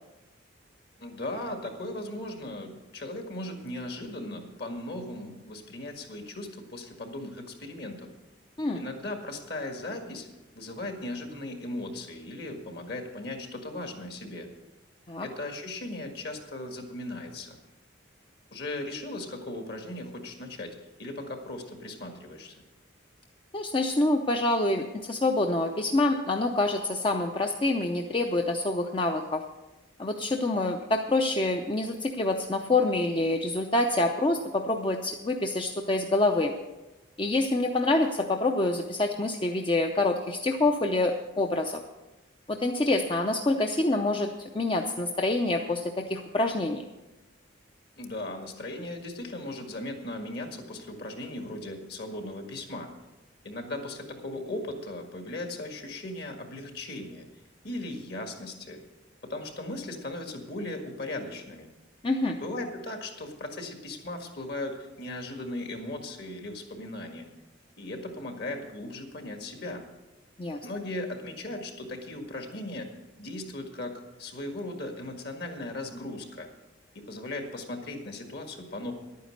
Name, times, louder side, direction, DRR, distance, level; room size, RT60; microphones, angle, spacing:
voice 1, 1.0-8.1 8.7-10.3 10.6-14.5 15.2-17.6 18.5-22.6 48.0-52.9 53.4-57.3 57.6-58.8 59.2-61.7 62.4-67.3 67.8-69.8 70.6-72.9 73.2-76.5 77.0-78.9, left 1 dB, 55° left, 4 dB, 1.8 m, -37 dB
voice 2, 23.5-29.4 30.0-36.5 37.2-41.8 42.5-46.8 62.0-62.4 70.4-70.6, left 2 dB, 25° left, 3 dB, 0.6 m, -26 dB
11.0 x 9.3 x 6.5 m, 1.1 s
head